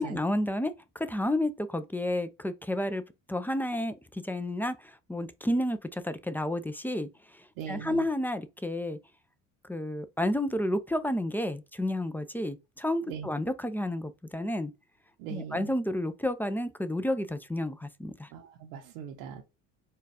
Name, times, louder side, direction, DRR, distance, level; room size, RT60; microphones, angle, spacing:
voice 1, 0.0-3.0 3.3-9.0 9.6-14.7 15.3-18.3, left 1 dB, 5° left, 0.4 m, -31 dB
voice 2, 7.6-8.0 13.1-13.3 15.2-15.7 18.3-19.4, right 8 dB, 85° right, 1.0 m, -40 dB
4.5 x 2.4 x 4.8 m
supercardioid pair, 90°, 38 cm